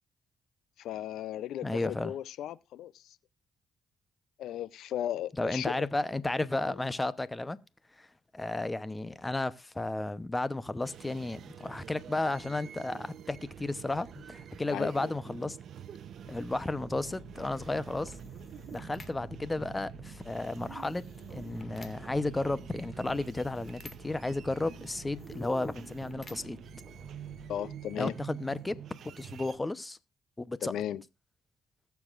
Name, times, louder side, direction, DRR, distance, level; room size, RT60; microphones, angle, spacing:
voice 1, 0.8-3.2 4.4-5.8 14.7-15.1 27.5-28.1 30.7-31.0, left 11 dB, 80° left, 0.5 m, -36 dB
voice 2, 1.6-2.1 5.4-7.6 8.0-8.1 8.3-15.6 16.3-18.1 18.7-21.0 21.3-26.6 28.0-28.8 29.0-30.0 30.4-30.7, left 2 dB, 15° left, 0.8 m, -33 dB
sound 1, 10.8-29.6, right 9 dB, 65° right, 0.8 m, -47 dB
sound 2, 16.0-28.0, left 5 dB, 35° left, 2.0 m, -53 dB
21.0 x 7.1 x 2.5 m
cardioid pair, 90°, 0 cm